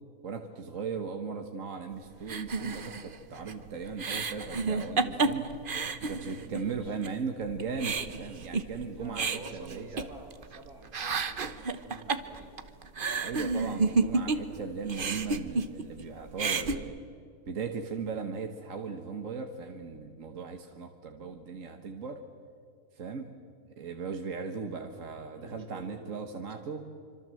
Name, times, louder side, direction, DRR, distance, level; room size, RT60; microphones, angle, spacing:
voice 1, 0.2-5.5 6.0-10.1 13.2-17.0 17.5-22.2 23.0-23.3 23.8-26.9, right 5 dB, 60° right, 5 dB, 1.6 m, -37 dB
sound 1, 2.3-6.7 7.0-7.1 7.5-10.6 10.8-14.6 14.9-16.0 16.3-16.8, right 4 dB, 40° right, 1.1 m, -31 dB
voice 2, 6.2-7.0 7.7-8.0 8.9-12.7 25.3-26.2, right 2 dB, 75° right, 2 dB, 4.1 m, -49 dB
26.5 x 25.5 x 7.7 m, 2.3 s
omnidirectional pair, 1.6 m